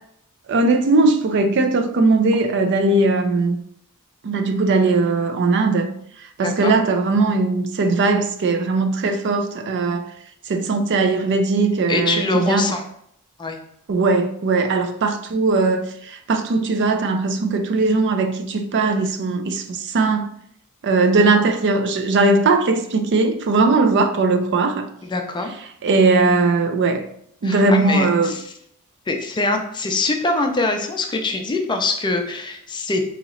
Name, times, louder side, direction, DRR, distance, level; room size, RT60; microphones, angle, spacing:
voice 1, 0.5-3.6 4.2-5.9 6.4-10.1 10.5-12.7 13.9-20.3 20.8-24.9 25.8-27.1 27.4-28.3, right 3 dB, 50° right, 0.4 m, -19 dB
voice 2, 6.4-6.7 11.9-12.8 13.4-13.6 25.0-25.5 27.4-28.4 29.1-33.0, left 2 dB, 20° left, 0.4 m, -23 dB
3.0 x 2.9 x 3.8 m
head